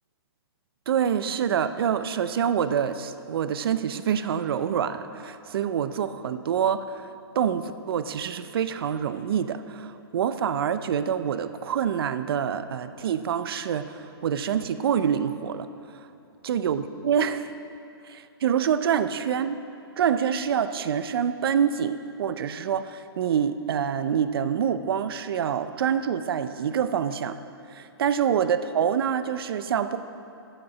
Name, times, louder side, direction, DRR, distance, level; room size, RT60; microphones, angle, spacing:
voice 1, 0.9-15.7 16.4-17.5 18.1-19.6 20.0-27.4 27.7-30.0, right 8 dB, 65° right, 12 dB, 0.6 m, -26 dB
9.7 x 8.0 x 5.9 m, 2.7 s
hypercardioid pair, 155°, 13 cm